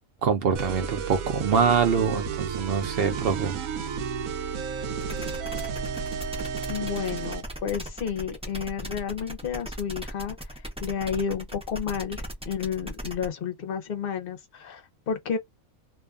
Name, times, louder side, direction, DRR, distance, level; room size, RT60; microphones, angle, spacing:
voice 1, 0.2-3.6, right 6 dB, 60° right, 0.7 m, -24 dB
sound 1, 0.5-7.5, right 6 dB, 80° right, 1.0 m, -32 dB
sound 2, 5.0-13.3, equal, 10° right, 0.3 m, -38 dB
voice 2, 6.7-10.4 10.8-15.4, left 7 dB, 50° left, 0.7 m, -31 dB
2.6 x 2.1 x 2.4 m
omnidirectional pair, 1.5 m